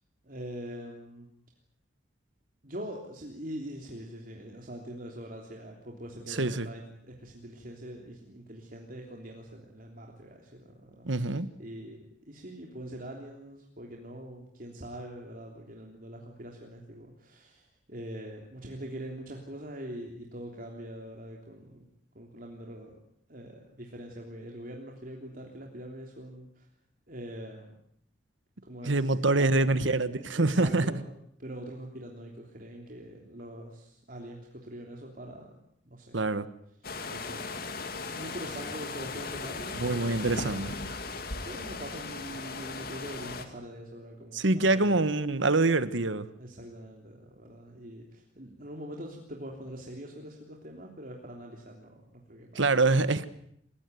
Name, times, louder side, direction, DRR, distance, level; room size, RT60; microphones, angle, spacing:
voice 1, 0.2-1.3 2.6-21.9 22.1-23.0 23.3-26.7 27.1-27.7 28.6-29.7 30.1-31.1 31.4-35.5 35.8-36.1 36.8-37.7 38.1-40.2 41.4-45.0 46.4-52.7, right 1 dB, 45° right, 3.3 m, -43 dB
voice 2, 6.3-6.7 11.0-11.5 28.8-30.8 36.1-36.5 39.7-40.7 44.3-46.3 52.5-53.3, right 2 dB, 80° right, 1.4 m, -25 dB
sound 1, 36.8-43.5, left 3 dB, 50° left, 2.3 m, -37 dB
28.0 x 17.0 x 9.3 m
head